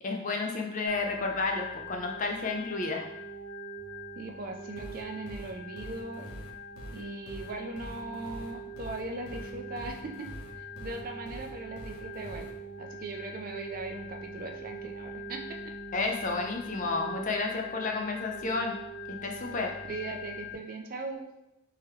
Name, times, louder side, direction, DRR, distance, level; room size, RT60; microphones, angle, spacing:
voice 1, 0.0-3.1 15.9-18.8 19.1-19.7, left 3 dB, 35° left, 2 dB, 0.5 m, -31 dB
Organ, 0.9-20.6, equal, 50° left, 1.0 m, -43 dB
voice 2, 4.2-6.3 6.9-10.3 10.6-12.5 12.8-15.7 19.9-21.3, right 2 dB, 40° right, 3 dB, 0.4 m, -39 dB
sound 1, 4.8-12.5, equal, 90° left, 0.8 m, -44 dB
3.8 x 2.9 x 3.1 m, 0.87 s
head